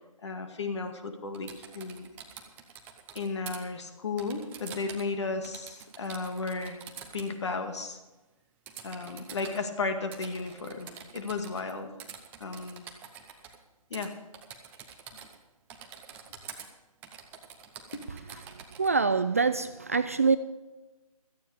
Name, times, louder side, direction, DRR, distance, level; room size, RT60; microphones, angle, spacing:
voice 1, 0.2-2.1 3.1-6.8 7.1-8.0 8.8-11.9 12.4-12.9 13.9-14.1 17.9-18.0, left 4 dB, 50° left, 2.1 m, -34 dB
Typing, 1.3-3.6 4.2-5.1 5.4-7.3 8.7-9.6 10.1-11.7 12.0-13.6 13.9-14.1 14.3-15.4 15.7-16.7 17.0-18.9, right 8 dB, 10° right, 0.7 m, -46 dB
voice 2, 18.8-20.4, right 4 dB, 25° right, 0.3 m, -25 dB
16.5 x 14.0 x 3.5 m
figure-of-eight pair, 150°, 19 cm